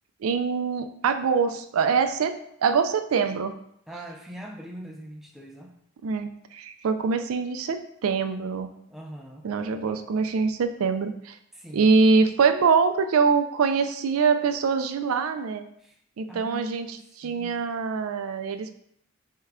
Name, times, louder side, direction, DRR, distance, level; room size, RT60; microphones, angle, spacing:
voice 1, 0.2-3.6 6.0-8.7 9.4-11.4 11.7-15.7 16.2-18.7, right 5 dB, 90° right, 9 dB, 0.4 m, -24 dB
voice 2, 3.9-5.7 8.9-9.5 11.6-11.9 16.3-17.6, right 1 dB, ahead, 0 dB, 0.4 m, -41 dB
5.6 x 2.2 x 3.6 m, 0.71 s
head